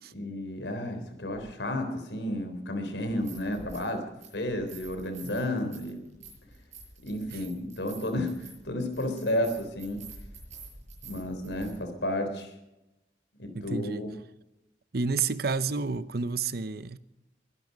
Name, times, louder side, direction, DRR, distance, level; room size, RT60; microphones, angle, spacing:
voice 1, 0.1-4.1 4.3-6.0 7.0-10.0 11.0-12.5 13.4-14.1, left 1 dB, 75° left, 3.7 m, -32 dB
sound 1, 1.3-1.4 3.0-3.9 4.2-11.7, right 3 dB, 40° right, 6.8 m, -48 dB
voice 2, 13.5-14.1 14.9-17.0, right 4 dB, 60° right, 0.8 m, -30 dB
23.0 x 11.0 x 5.2 m
head